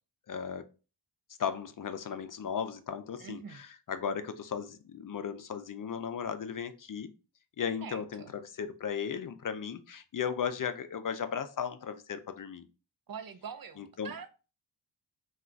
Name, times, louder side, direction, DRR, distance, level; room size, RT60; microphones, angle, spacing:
voice 1, 0.3-0.6 1.4-7.1 7.6-12.7 14.0-14.1, left 7 dB, 50° left, 10 dB, 0.5 m, -36 dB
voice 2, 3.2-3.6 7.8-8.3 13.1-14.3, right 6 dB, 55° right, 10 dB, 0.6 m, -44 dB
3.7 x 2.4 x 4.4 m, 0.33 s
cardioid pair, 75°, 43 cm